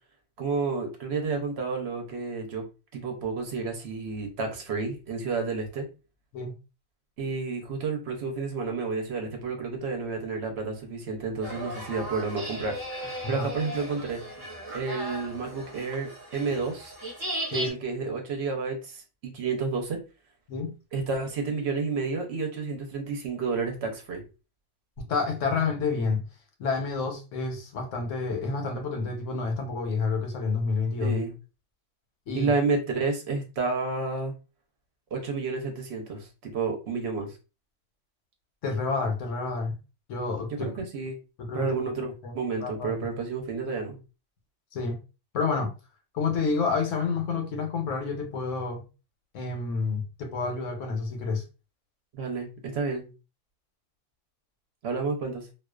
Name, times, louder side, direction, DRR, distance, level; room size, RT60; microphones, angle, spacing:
voice 1, 0.4-2.6 2.9-5.9 7.2-14.2 14.7-16.9 17.5-20.0 20.9-24.2 31.0-31.3 32.3-34.3 35.1-37.4 40.6-41.2 41.5-44.0 52.1-53.1 54.8-55.5, right 4 dB, 65° right, 0.9 m, -30 dB
sound 1, 11.4-17.7, right 1 dB, 20° right, 0.8 m, -37 dB
voice 2, 25.1-26.2 26.6-31.2 32.3-32.5 38.6-39.8 40.1-40.7 41.4-41.7 42.2-42.3 42.6-42.9 44.7-45.0 45.3-45.7 46.1-48.8 49.3-51.4, left 4 dB, 85° left, 1.1 m, -29 dB
2.4 x 2.3 x 2.2 m
omnidirectional pair, 1.3 m